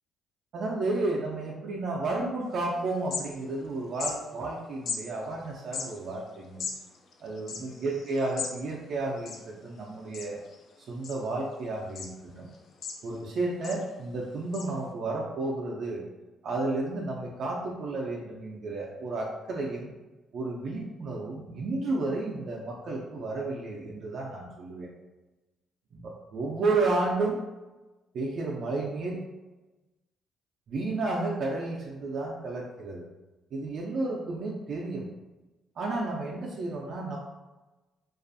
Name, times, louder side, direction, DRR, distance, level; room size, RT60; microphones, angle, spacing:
voice 1, 0.5-6.6 7.2-10.4 10.9-12.5 13.0-16.0 16.4-19.9 20.3-24.9 25.9-27.4 28.1-29.2 30.7-33.1 33.5-35.1 35.8-37.2, right 2 dB, 65° right, -3 dB, 0.4 m, -32 dB
sound 1, 2.5-2.6 2.9-3.7 3.9-4.2 4.9-5.0 5.6-8.6 8.9-9.0 9.2-9.8 10.1-10.6 11.0-11.5 11.9-12.1 12.5-13.3 13.6-13.8 14.5-14.6, left 5 dB, 65° left, 0.3 m, -37 dB
2.5 x 2.3 x 2.5 m, 1.1 s
cardioid pair, 90°, 0 cm